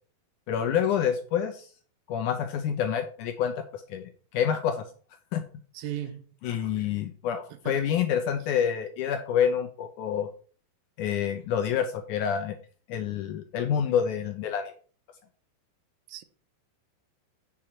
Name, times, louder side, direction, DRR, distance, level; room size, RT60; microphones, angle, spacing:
voice 1, 0.5-1.7 2.1-4.8 5.3-5.5 6.4-10.3 11.0-12.6 12.9-14.7, left 8 dB, 80° left, 1.9 m, -28 dB
voice 2, 5.7-6.3 7.5-7.8 16.1-16.2, right 12 dB, 80° right, 2.3 m, -36 dB
8.7 x 6.2 x 4.4 m
omnidirectional pair, 4.2 m